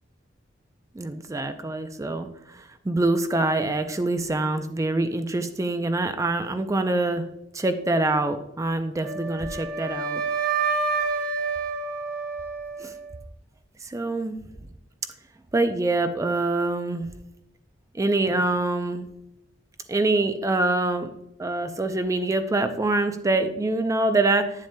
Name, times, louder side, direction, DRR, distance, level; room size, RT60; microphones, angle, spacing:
voice 1, 0.9-7.2 7.5-10.2 12.8-12.9 13.8-14.4 15.5-17.1 17.9-19.1 19.9-21.1 21.4-24.7, right 2 dB, 15° right, 8 dB, 0.4 m, -25 dB
Wind instrument woodwind instrument, 9.0-13.1, right 4 dB, 50° right, 0.9 m, -28 dB
8.9 x 7.3 x 2.2 m, 0.83 s
head